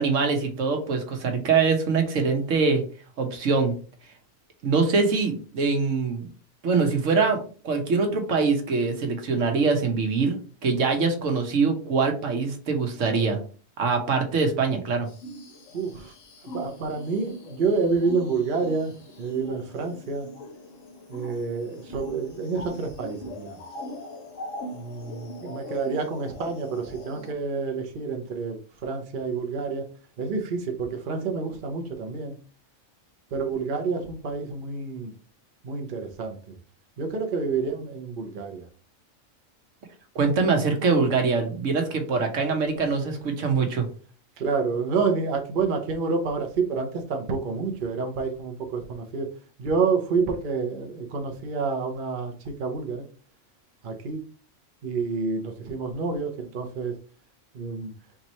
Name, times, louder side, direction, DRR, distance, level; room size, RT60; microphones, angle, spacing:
voice 1, 0.0-2.8 3.2-3.7 4.6-6.3 6.6-13.4 13.8-15.1 40.1-43.9, right 4 dB, 70° right, 4 dB, 1.2 m, -23 dB
sound 1, 15.1-27.3, equal, 70° left, 1.2 m, -41 dB
voice 2, 15.7-16.1 16.4-20.3 21.1-23.6 24.7-29.9 30.2-32.3 33.3-35.1 35.6-36.6 37.0-38.7 44.4-49.3 49.6-53.0 53.8-54.2 54.8-57.0 57.5-57.9, right 4 dB, 50° right, 4 dB, 0.8 m, -28 dB
3.6 x 3.0 x 4.1 m, 0.39 s
omnidirectional pair, 1.4 m